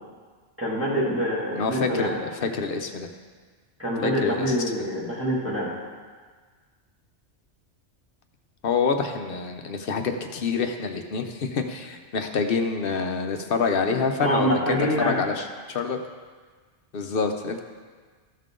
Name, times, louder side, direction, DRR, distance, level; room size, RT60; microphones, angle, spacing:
voice 1, 0.6-2.1 3.8-5.7 14.2-15.1, equal, 10° right, -9 dB, 2.0 m, -25 dB
voice 2, 1.5-3.1 4.0-4.4 8.6-16.0 16.9-17.6, left 5 dB, 55° left, 5 dB, 0.8 m, -27 dB
14.0 x 5.6 x 3.7 m, 1.5 s
omnidirectional pair, 1.2 m